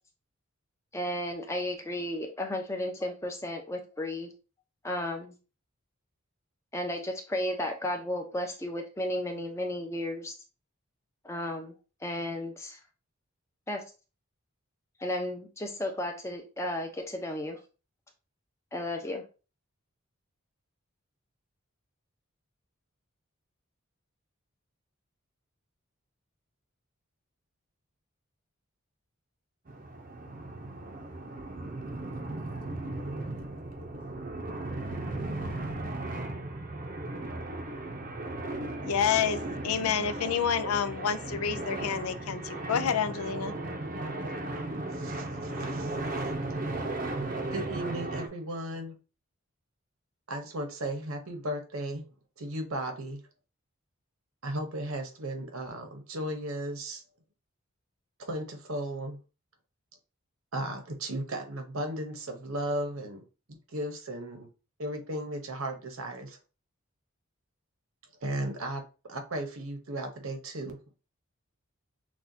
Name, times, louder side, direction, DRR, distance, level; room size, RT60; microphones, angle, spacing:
voice 1, 0.9-4.3 4.8-5.4 6.7-10.3 11.2-11.7 12.0-12.8 13.7-13.8 15.0-17.6 18.7-19.2, left 1 dB, 15° left, 0.6 m, -33 dB
sound 1, 29.7-48.3, right 2 dB, 40° right, 0.6 m, -36 dB
voice 2, 38.8-43.5, left 7 dB, 80° left, 0.4 m, -29 dB
voice 3, 44.0-46.5 47.5-48.9 50.3-52.0 52.4-53.2 54.4-57.0 58.2-59.2 60.5-63.2 63.5-64.5 64.8-66.4 68.2-68.8 69.1-70.8, right 1 dB, 75° right, 1.0 m, -36 dB
6.1 x 2.4 x 2.7 m
head